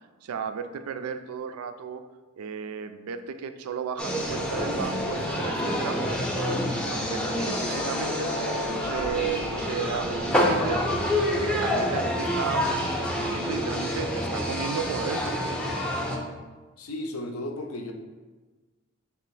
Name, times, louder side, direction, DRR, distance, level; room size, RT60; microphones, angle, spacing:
voice 1, 0.2-2.0 2.4-6.5 6.9-10.8 11.4-15.5, right 6 dB, 80° right, 9 dB, 0.3 m, -34 dB
sound 1, 4.0-16.2, left 1 dB, 5° left, 0.5 m, -27 dB
voice 2, 16.8-17.9, left 1 dB, 70° left, 4 dB, 0.5 m, -34 dB
3.3 x 2.9 x 4.6 m, 1.3 s
head